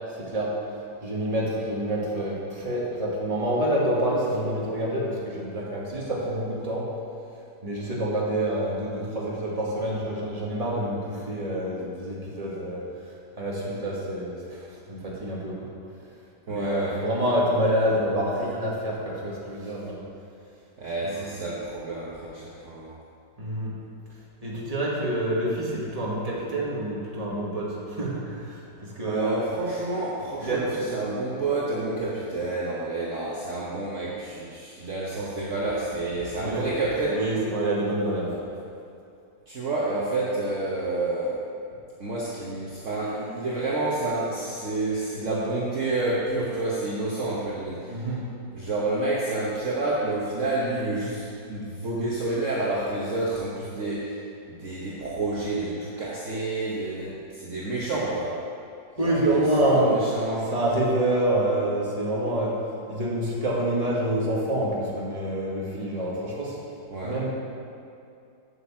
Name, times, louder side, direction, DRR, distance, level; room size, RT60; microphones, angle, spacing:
voice 1, 0.2-0.5 1.0-6.9 7.6-12.8 13.4-15.7 16.5-20.0 21.0-21.3 23.4-23.7 24.4-29.4 30.4-30.8 36.4-36.6 37.1-38.4 47.9-48.3 59.0-60.0 60.5-62.6 62.9-66.6 67.0-67.3, right 1 dB, 20° right, -5 dB, 1.9 m, -27 dB
voice 2, 16.5-17.0 20.8-22.9 29.1-37.3 39.5-41.4 42.0-48.1 48.5-54.2 54.5-58.4 59.0-60.5 66.9-67.2, right 2 dB, 50° right, -5 dB, 1.4 m, -29 dB
8.1 x 7.1 x 7.4 m, 2.5 s
omnidirectional pair, 1.8 m